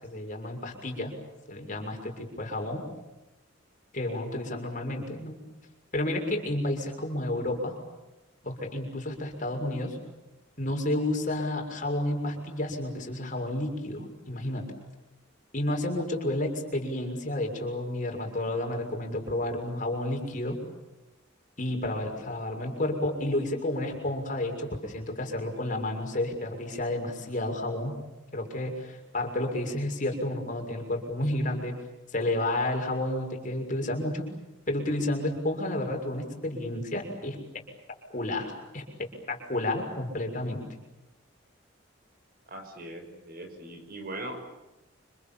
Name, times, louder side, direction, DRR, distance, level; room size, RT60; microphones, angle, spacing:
voice 1, 0.0-1.2 1.5-2.9 3.9-5.4 5.9-7.8 8.4-10.0 10.6-14.7 15.5-20.6 21.6-28.0 28.3-31.7 32.1-34.2 34.7-37.4 38.1-38.8 39.3-40.6, left 1 dB, 40° left, 3 dB, 6.5 m, -31 dB
voice 2, 42.5-44.4, right 1 dB, 50° right, 6 dB, 6.1 m, -40 dB
30.0 x 27.0 x 7.3 m, 1.0 s
head